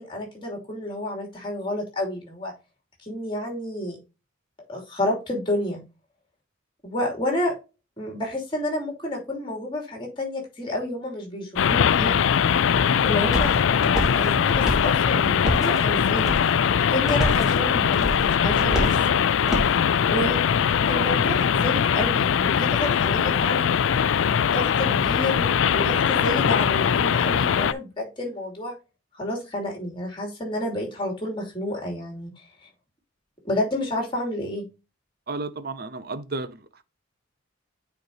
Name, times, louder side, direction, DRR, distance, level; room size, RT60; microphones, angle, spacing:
voice 1, 0.0-2.5 3.0-4.0 4.7-5.8 6.8-7.6 8.0-12.2 13.0-13.5 14.1-16.4 16.8-18.9 20.1-20.4 20.9-23.7 24.5-28.7 29.1-32.3 32.6-32.7 33.4-34.6, left 1 dB, 25° left, 2.8 m, -30 dB
sound 1, 11.6-27.7, left 7 dB, 70° left, 0.4 m, -21 dB
sound 2, 13.3-19.8, equal, 5° right, 2.0 m, -30 dB
voice 2, 35.3-36.8, right 3 dB, 50° right, 0.6 m, -33 dB
9.3 x 4.4 x 2.8 m
head